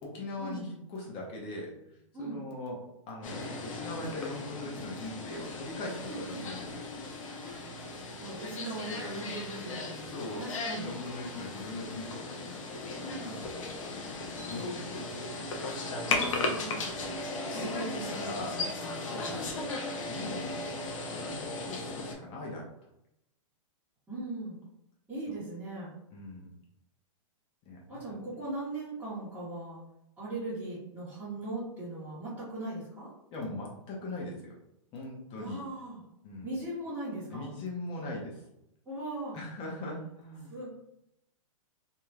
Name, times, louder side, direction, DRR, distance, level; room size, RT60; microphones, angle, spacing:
voice 1, 0.0-2.8 3.1-6.8 10.1-10.5 10.8-13.4 13.8-15.1 17.5-18.6 19.0-20.7 21.0-22.7 25.3-25.4 26.1-26.5 27.6-28.2 33.3-34.5 34.9-35.6 36.2-36.5 37.3-38.4 39.3-40.5, left 2 dB, 30° left, -3 dB, 0.9 m, -41 dB
sound 1, 3.2-22.1, left 3 dB, 75° left, 0.7 m, -37 dB
voice 2, 6.1-6.4 7.4-7.7 8.2-11.0 13.0-13.4 16.1-16.9 17.5-19.5 24.1-24.6 25.1-25.9 27.9-29.8 30.2-33.1 35.3-36.0 36.4-37.4 38.8-39.4 40.5-40.7, right 2 dB, 10° right, -14 dB, 1.4 m, -39 dB
3.0 x 2.7 x 2.3 m, 0.81 s
hypercardioid pair, 130°, 17 cm